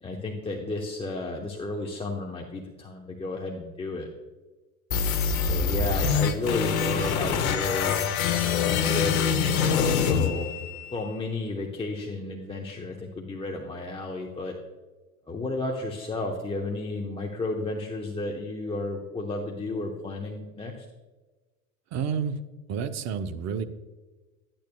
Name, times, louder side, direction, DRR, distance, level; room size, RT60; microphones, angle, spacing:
voice 1, 0.0-4.1 5.4-7.9 8.6-10.5 10.9-14.6 15.3-20.9, left 2 dB, 15° left, 0 dB, 1.0 m, -33 dB
sound 1, 4.9-10.9, left 6 dB, 75° left, 1.0 m, -25 dB
voice 2, 21.9-22.4 22.7-23.6, right 6 dB, 40° right, 10 dB, 0.8 m, -29 dB
12.0 x 8.9 x 2.3 m, 1.2 s
hypercardioid pair, 90°, 42 cm